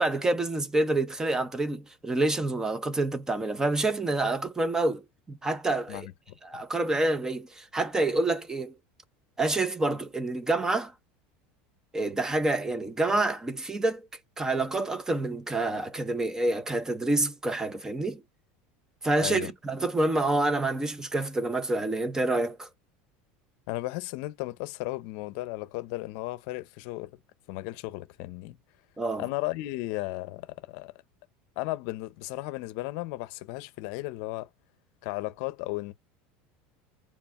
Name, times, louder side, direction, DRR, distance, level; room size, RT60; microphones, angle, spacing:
voice 1, 0.0-6.1 6.4-8.7 9.4-10.9 11.9-14.1 14.4-18.2 19.0-22.7 29.0-29.3, right 2 dB, 10° right, 0.5 m, -27 dB
voice 2, 23.7-27.1 27.5-28.6 29.2-30.9 31.6-34.5 35.0-35.9, left 19 dB, 65° left, 0.6 m, -35 dB
4.4 x 3.5 x 2.4 m
supercardioid pair, 140°, 5 cm